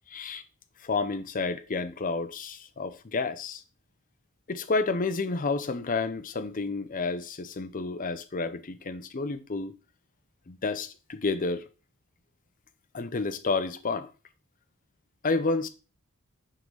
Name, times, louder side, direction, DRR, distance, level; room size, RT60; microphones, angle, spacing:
voice 1, 0.1-0.4 0.8-3.6 4.5-9.8 10.5-11.6 12.9-14.1 15.2-15.7, left 3 dB, 35° left, 0.6 m, -30 dB
6.1 x 3.8 x 5.4 m
head